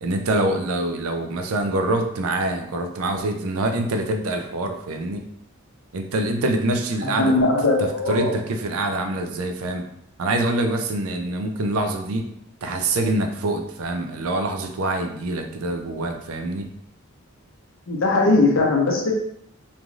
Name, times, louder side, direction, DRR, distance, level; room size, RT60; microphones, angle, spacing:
voice 1, 0.0-5.2 5.9-7.3 7.8-9.8 10.2-12.3 12.6-16.7, right 2 dB, 80° right, 5 dB, 0.4 m, -25 dB
voice 2, 7.0-8.3 17.9-19.1, left 2 dB, 60° left, 0 dB, 0.6 m, -19 dB
3.2 x 2.5 x 2.3 m, 0.72 s
head